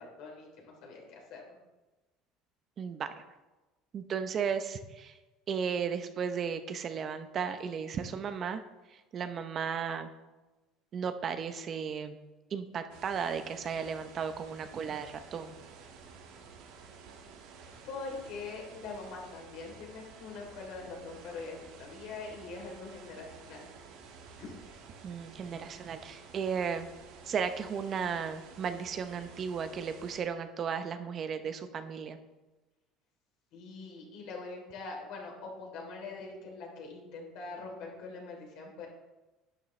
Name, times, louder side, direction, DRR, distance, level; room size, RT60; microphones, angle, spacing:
voice 1, 0.0-1.4 17.8-23.7 24.4-24.8 33.5-38.9, left 3 dB, 70° left, -1 dB, 3.2 m, -43 dB
voice 2, 2.8-3.1 3.9-5.2 5.5-8.6 9.1-10.1 10.9-12.2 12.5-15.6 25.0-26.9 27.3-32.2, right 6 dB, 40° right, 9 dB, 0.7 m, -35 dB
sound 1, 12.9-30.2, right 5 dB, 80° right, 1.8 m, -52 dB
11.5 x 9.0 x 3.2 m, 1.1 s
cardioid pair, 120°, 0 cm